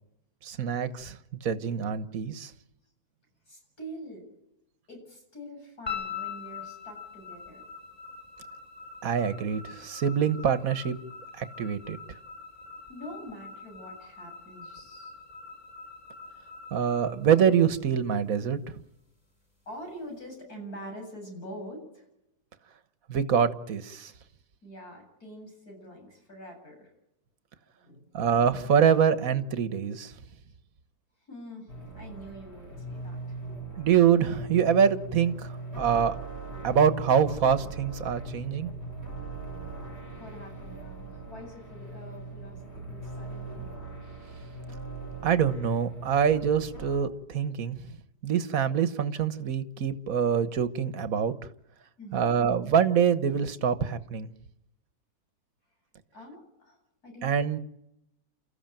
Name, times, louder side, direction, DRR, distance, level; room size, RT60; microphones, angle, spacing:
voice 1, 0.4-1.2 1.4-2.5 9.0-10.9 11.4-12.0 16.7-18.6 23.1-24.1 28.1-30.1 33.8-35.5 35.7-36.2 36.6-38.7 45.2-47.8 48.2-51.3 52.1-54.3 57.2-57.6, right 7 dB, 65° right, 1.7 m, -25 dB
voice 2, 3.5-4.3 4.9-7.6 12.9-15.1 19.7-22.1 24.6-26.9 27.8-28.1 31.3-31.7 32.0-33.4 40.2-43.7 52.0-52.4 56.1-56.8 57.0-57.3, equal, 75° left, 8.7 m, -45 dB
sound 1, 5.9-18.2, left 6 dB, 25° left, 6.9 m, -43 dB
sound 2, 31.7-47.0, right 3 dB, 40° left, 5.8 m, -40 dB
29.5 x 14.5 x 9.1 m
omnidirectional pair, 1.6 m